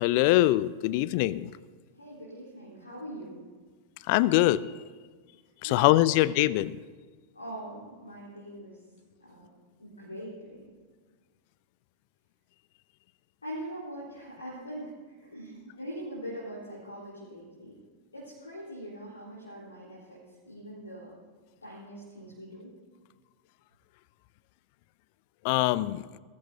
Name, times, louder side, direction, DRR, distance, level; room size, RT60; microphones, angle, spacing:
voice 1, 0.0-1.5 4.1-4.7 5.6-6.8 25.4-26.1, left 16 dB, 45° left, 19 dB, 0.5 m, -23 dB
voice 2, 1.9-3.4 5.6-6.3 7.3-8.8 9.2-9.5 9.8-10.6 13.4-17.8 18.1-21.1 21.6-22.7, equal, 80° left, -7 dB, 4.2 m, -42 dB
21.0 x 14.0 x 2.8 m, 1.5 s
figure-of-eight pair, 90°, 0 cm